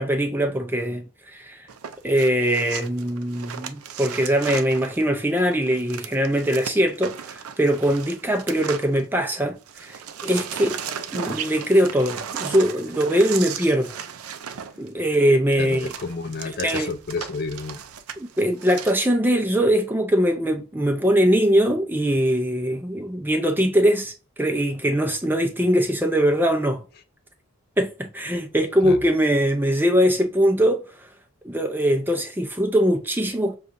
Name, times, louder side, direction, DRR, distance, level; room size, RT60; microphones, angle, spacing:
voice 1, 0.0-1.7 2.0-10.8 11.1-14.0 14.8-15.9 16.6-16.9 18.2-26.8 27.8-30.8 31.4-33.5, equal, 10° right, 0.5 m, -22 dB
sound 1, 1.7-9.4 9.7-18.9, right 8 dB, 90° right, 0.5 m, -36 dB
voice 2, 15.6-17.8 28.8-29.0, left 4 dB, 45° left, 0.4 m, -30 dB
6.5 x 2.4 x 2.6 m
head